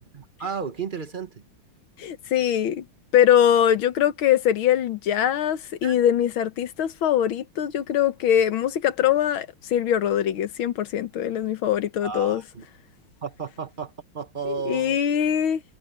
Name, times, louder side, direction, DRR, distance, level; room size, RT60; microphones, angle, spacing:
voice 1, 0.1-1.4 5.8-5.9 12.0-12.6 13.2-15.0, right 6 dB, 25° right, 1.4 m, -33 dB
voice 2, 2.0-2.9 3.1-12.4 14.5-15.6, left 10 dB, 70° left, 1.9 m, -22 dB
omnidirectional pair, 2.4 m